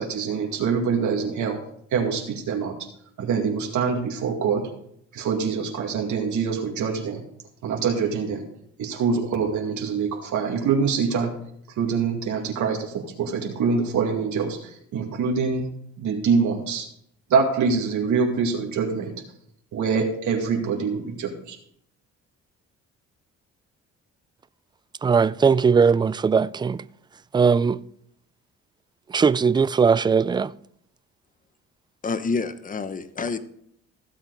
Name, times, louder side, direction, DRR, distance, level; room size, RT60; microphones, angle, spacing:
voice 1, 0.0-1.6 1.9-2.8 3.2-4.7 5.1-7.2 7.6-8.5 8.8-11.3 11.8-15.7 16.0-16.9 17.3-19.1 19.7-21.6, right 5 dB, 75° right, 2.2 m, -25 dB
voice 2, 25.0-26.8 27.3-27.8 29.1-30.5, right 5 dB, 15° right, 0.3 m, -19 dB
voice 3, 32.0-33.4, left 4 dB, 25° left, 0.9 m, -28 dB
15.5 x 7.4 x 3.9 m
cardioid pair, 90°, 30 cm